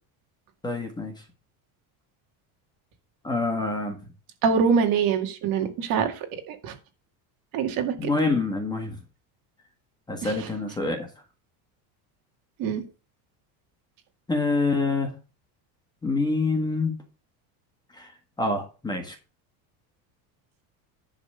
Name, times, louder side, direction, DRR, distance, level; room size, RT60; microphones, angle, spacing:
voice 1, 0.6-1.1 3.2-4.0 8.0-9.0 10.1-11.1 14.3-15.1 16.0-16.9 17.9-18.1 18.4-19.1, left 3 dB, 10° left, 4 dB, 1.5 m, -26 dB
voice 2, 4.4-6.1 6.5-6.7 7.5-7.9 10.2-10.3 12.6-12.8, right 6 dB, 50° right, 4 dB, 2.1 m, -24 dB
11.0 x 4.0 x 6.6 m, 0.33 s
cardioid pair, 165°, 44 cm